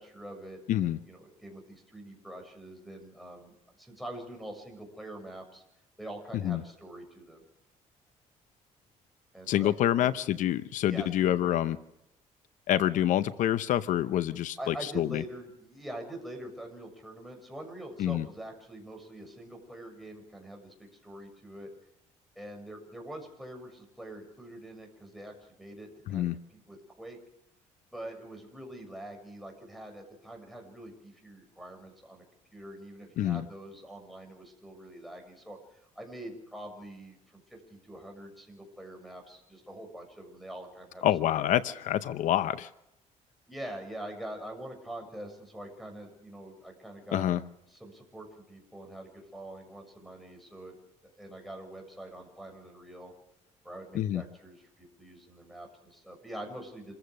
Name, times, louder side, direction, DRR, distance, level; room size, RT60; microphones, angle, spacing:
voice 1, 0.0-5.6 6.0-7.4 9.3-10.1 10.8-11.7 14.6-21.7 22.4-27.2 27.9-32.2 32.5-41.7 43.5-47.3 47.7-50.8 51.0-53.1 53.6-56.9, right 1 dB, ahead, 5 dB, 6.9 m, -45 dB
voice 2, 0.7-1.0 6.4-6.6 9.5-11.8 12.7-15.2 18.0-18.3 26.1-26.4 33.2-33.4 41.0-42.7 47.1-47.4 53.9-54.2, left 12 dB, 70° left, 14 dB, 0.7 m, -27 dB
28.0 x 15.0 x 6.5 m, 0.84 s
cardioid pair, 105°, 13 cm